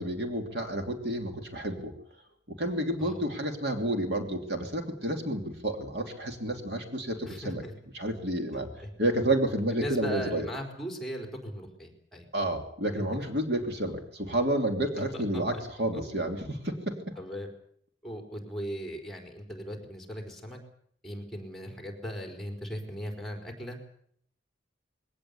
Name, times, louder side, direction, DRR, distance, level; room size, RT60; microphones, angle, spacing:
voice 1, 0.0-1.9 2.5-7.6 7.9-8.7 9.0-10.5 12.3-17.0, right 1 dB, 60° right, 4 dB, 2.9 m, -30 dB
voice 2, 7.2-7.7 8.8-8.9 9.7-12.3 15.1-15.4 15.9-16.0 17.2-17.5 18.0-20.6 21.0-23.8, equal, ahead, 3 dB, 4.4 m, -38 dB
22.5 x 18.0 x 8.4 m, 0.67 s
head